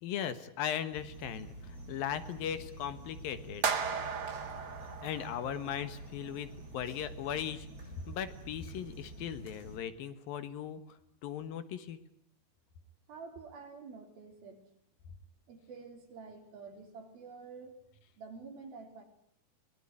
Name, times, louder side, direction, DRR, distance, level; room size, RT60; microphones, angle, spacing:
voice 1, 0.0-3.6 5.0-7.7 8.1-12.0, left 9 dB, 70° left, 12 dB, 3.1 m, -38 dB
sound 1, 0.9-9.8, right 1 dB, 20° right, 8.0 m, -48 dB
sound 2, 3.6-5.9, right 6 dB, 45° right, 1.3 m, -35 dB
voice 2, 13.1-14.6 15.5-17.8 18.2-19.0, right 4 dB, 75° right, 3 dB, 5.8 m, -48 dB
23.5 x 20.0 x 9.9 m, 0.69 s
omnidirectional pair, 4.3 m